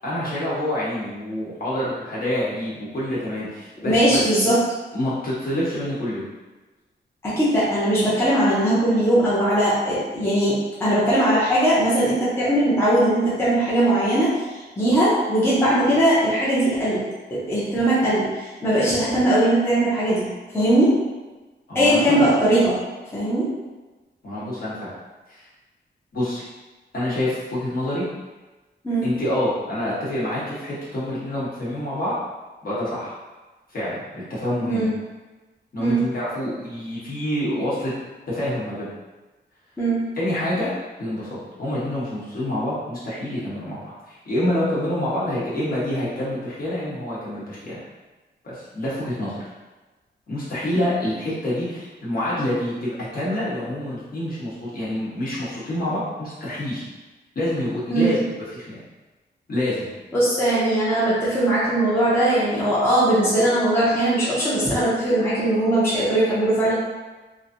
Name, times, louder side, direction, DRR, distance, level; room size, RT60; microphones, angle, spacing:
voice 1, 0.0-4.5 4.9-6.2 21.7-22.3 24.2-24.9 25.3-25.5 26.1-26.5 26.9-28.0 29.0-32.2 32.6-33.1 33.7-34.9 35.7-37.9 38.3-38.9 40.2-40.7 41.0-47.8 48.4-49.4 50.3-56.8 57.3-58.2 58.5-58.8 59.5-59.9, left 1 dB, 50° left, -8 dB, 1.0 m, -27 dB
voice 2, 3.8-4.6 7.2-14.4 14.8-17.0 17.3-20.9 21.7-22.8 23.1-23.5 28.8-29.1 34.7-34.9 35.8-36.0 39.8-40.0 57.9-58.2 60.1-66.7, right 1 dB, 15° left, -9 dB, 0.6 m, -20 dB
3.1 x 2.6 x 2.6 m, 1.2 s
wide cardioid pair, 180°, 19 cm